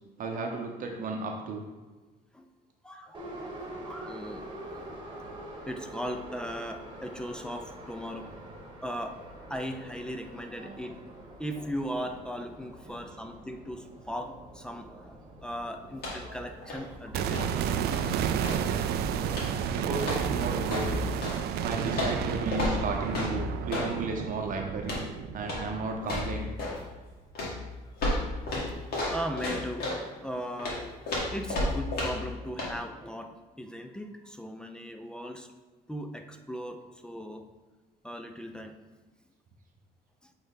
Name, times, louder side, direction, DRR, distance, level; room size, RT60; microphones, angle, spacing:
voice 1, 0.2-1.6 10.6-10.8 12.8-13.0 19.3-25.0 25.3-26.5, right 3 dB, 55° right, 2 dB, 0.8 m, -34 dB
voice 2, 2.8-3.6 3.9-4.9 5.7-8.3 8.8-9.2 9.5-11.0 11.2-17.4 29.1-29.9 30.2-35.5 35.9-37.4 38.0-38.7, equal, 5° left, 5 dB, 0.5 m, -38 dB
Subway metro underground, 3.1-23.0, right 1 dB, 30° right, 1.4 m, -47 dB
sound 1, 15.9-16.4 16.6-18.7 19.3-19.7 20.0-21.4 21.9-23.9 24.8-25.1 25.4-25.7 26.0-26.8 27.4-30.0 30.6-32.3 32.6-32.7, left 2 dB, 65° left, 1.9 m, -33 dB
sound 2, 17.1-27.1 27.4-27.5, right 8 dB, 70° right, 0.4 m, -32 dB
8.1 x 3.5 x 3.8 m, 1.3 s
cardioid pair, 110°, 17 cm